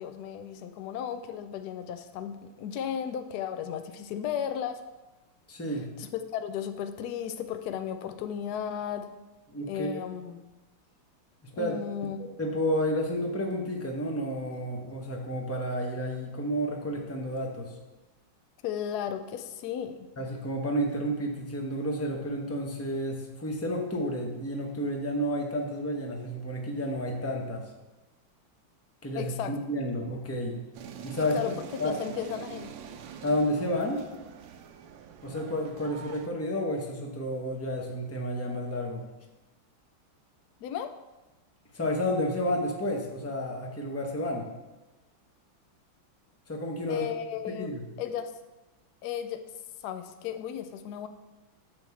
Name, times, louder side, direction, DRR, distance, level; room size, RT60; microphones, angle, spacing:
voice 1, 0.0-4.8 6.0-9.1 9.7-10.4 11.5-12.3 18.6-20.1 29.1-29.6 31.3-32.7 40.6-40.9 46.9-48.3 49.0-49.4 49.8-51.1, left 9 dB, 75° left, 8 dB, 0.9 m, -35 dB
voice 2, 5.5-5.9 9.5-10.0 11.6-17.8 20.2-27.7 29.0-30.6 31.0-31.9 33.2-34.0 35.2-39.0 41.7-44.5 46.5-47.0 47.5-47.8, equal, 20° left, 1 dB, 0.4 m, -31 dB
sound 1, 30.7-36.3, right 8 dB, 75° right, 1.3 m, -45 dB
10.0 x 3.5 x 7.0 m, 1.1 s
omnidirectional pair, 2.3 m